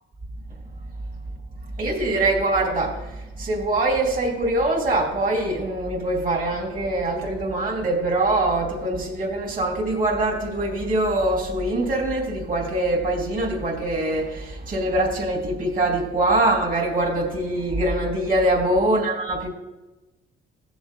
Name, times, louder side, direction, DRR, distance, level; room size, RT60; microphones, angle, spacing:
voice 1, 1.8-19.5, right 1 dB, 45° right, -2 dB, 2.9 m, -23 dB
18.0 x 7.1 x 2.3 m, 1.1 s
cardioid pair, 90°, 20 cm